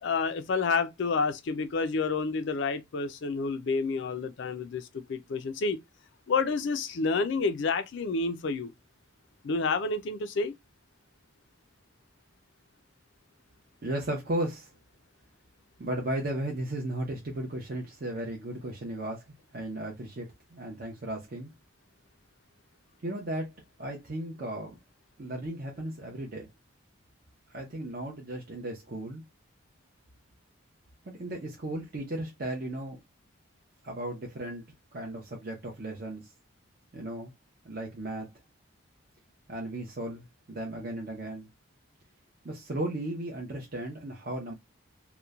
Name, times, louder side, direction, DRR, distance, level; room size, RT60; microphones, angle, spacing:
voice 1, 0.0-5.8 6.3-8.7 9.4-10.6, left 4 dB, 60° left, 0.4 m, -29 dB
voice 2, 13.8-14.7 15.8-19.2 19.5-21.5 23.0-24.8 25.2-26.5 27.5-29.2 31.1-33.0 33.8-34.6 34.9-36.3 36.9-37.3 37.6-38.3 39.5-41.5 42.4-44.5, right 1 dB, 45° right, 0.6 m, -35 dB
2.9 x 2.1 x 2.3 m
head